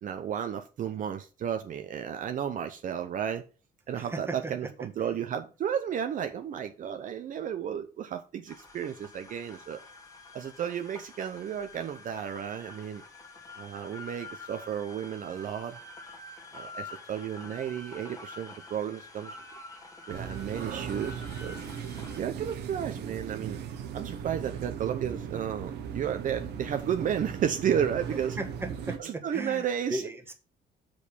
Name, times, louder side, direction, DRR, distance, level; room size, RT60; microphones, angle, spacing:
voice 1, 0.0-3.4 3.9-9.8 10.3-13.0 13.6-15.8 16.5-19.4 20.1-21.8 22.1-23.6 23.9-28.4 29.0-30.0, right 9 dB, 50° right, 0.7 m, -33 dB
voice 2, 3.9-4.7 28.1-30.3, right 1 dB, 15° right, 1.4 m, -37 dB
sound 1, 8.5-22.2, left 2 dB, 20° left, 1.7 m, -47 dB
sound 2, 20.1-29.0, right 7 dB, 75° right, 1.2 m, -38 dB
6.5 x 5.2 x 5.3 m
cardioid pair, 130°, 17 cm